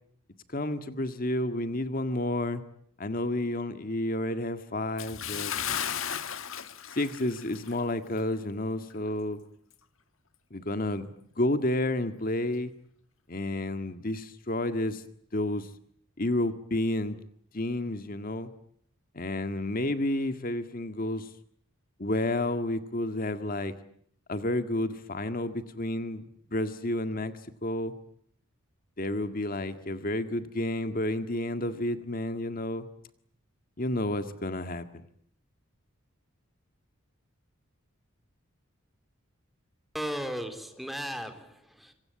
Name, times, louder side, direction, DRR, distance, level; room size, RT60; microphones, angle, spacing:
voice 1, 0.5-2.6 3.0-5.5 6.9-9.4 10.5-11.1 11.4-12.7 13.3-15.0 15.3-15.7 16.2-17.2 17.5-18.5 19.1-21.3 22.0-23.7 24.3-26.2 26.5-27.3 27.6-27.9 29.0-32.9 33.8-35.0, left 1 dB, 40° left, 9 dB, 1.8 m, -30 dB
Bathtub (filling or washing) / Splash splatter, 5.0-7.8 8.2-8.3 8.9-9.0, left 9 dB, 75° left, 1.7 m, -35 dB
voice 2, 39.9-41.9, equal, ahead, 7 dB, 3.6 m, -36 dB
27.0 x 24.5 x 8.7 m, 0.66 s
head